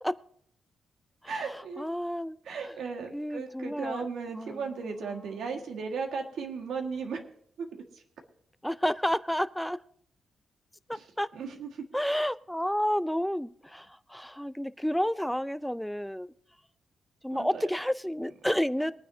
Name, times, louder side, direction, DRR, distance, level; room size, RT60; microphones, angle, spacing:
voice 1, 1.3-1.8 2.4-7.3 7.6-7.8 10.9-11.0 11.3-11.8 17.3-17.6, right 5 dB, 80° right, 3 dB, 1.7 m, -36 dB
voice 2, 1.8-2.4 3.1-4.1 4.3-4.6 8.6-9.8 10.9-11.3 11.9-16.3 17.2-18.9, equal, ahead, 14 dB, 0.4 m, -30 dB
22.0 x 9.4 x 2.7 m, 0.65 s
cardioid pair, 125°, 0 cm